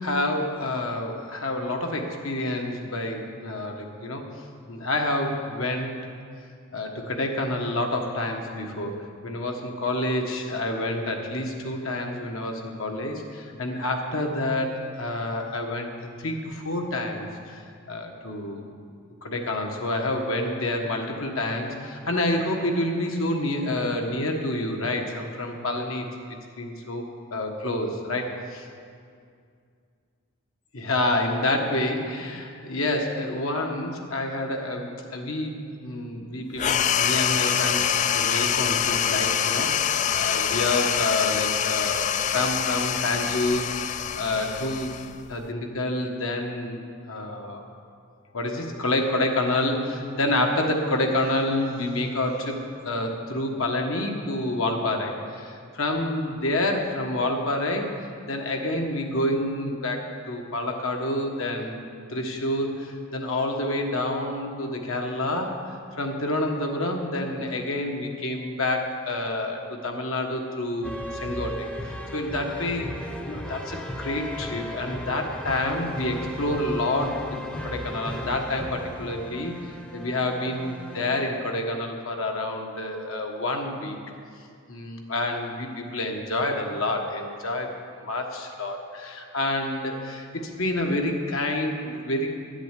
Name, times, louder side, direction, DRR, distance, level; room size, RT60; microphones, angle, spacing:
voice 1, 0.0-4.2 4.7-5.9 6.7-8.9 9.2-17.6 17.9-18.6 19.2-26.1 26.6-27.0 27.3-28.7 30.7-44.9 45.3-47.6 48.3-52.6 52.8-57.9 58.2-61.8 62.1-65.6 66.0-77.1 77.6-79.5 79.9-84.0 84.7-87.7 88.0-92.3, left 1 dB, 65° left, 2 dB, 1.4 m, -28 dB
sound 1, 36.6-45.5, left 9 dB, 35° left, 0.3 m, -25 dB
sound 2, 70.8-81.3, equal, 5° left, 0.8 m, -36 dB
11.0 x 8.1 x 8.3 m, 2.3 s
head